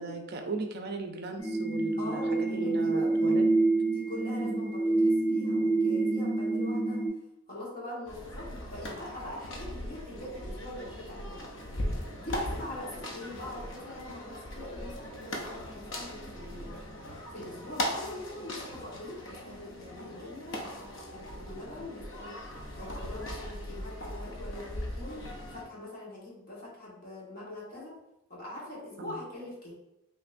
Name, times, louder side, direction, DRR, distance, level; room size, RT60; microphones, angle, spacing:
voice 1, 0.0-3.4 4.4-4.7 29.0-29.2, right 2 dB, 50° right, 4 dB, 0.5 m, -38 dB
sound 1, 1.4-7.1, right 2 dB, 20° right, 0.9 m, -27 dB
voice 2, 2.0-3.3 3.9-7.0 7.5-11.4 12.2-16.8 17.3-25.2 25.5-27.9 28.3-29.7, left 1 dB, 45° left, -5 dB, 1.5 m, -43 dB
sound 2, 8.1-25.6, left 1 dB, 60° left, 0.7 m, -39 dB
5.5 x 3.0 x 2.6 m, 0.88 s
head